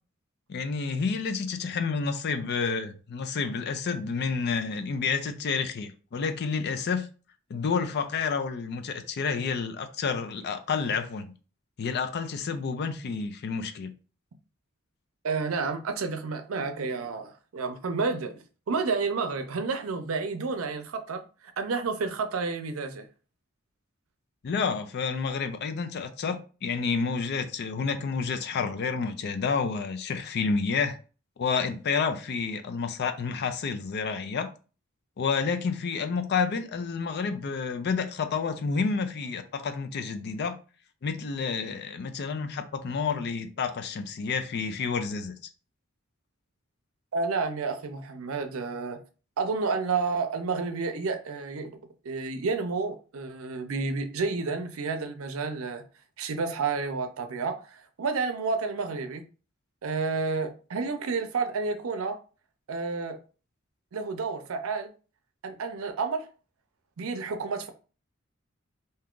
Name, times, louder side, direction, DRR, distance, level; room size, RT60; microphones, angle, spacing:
voice 1, 0.5-7.1 7.5-11.3 11.8-13.9 24.4-31.0 31.4-34.5 35.2-40.6 41.0-45.4, left 5 dB, 55° left, 0.4 m, -29 dB
voice 2, 15.2-18.4 18.7-21.2 21.6-23.1 47.1-49.0 49.4-51.7 52.0-55.8 56.2-59.2 59.8-62.2 62.7-63.2 63.9-64.9 65.4-66.3 67.0-67.7, right 4 dB, 85° right, 0.5 m, -30 dB
2.7 x 2.3 x 3.6 m
head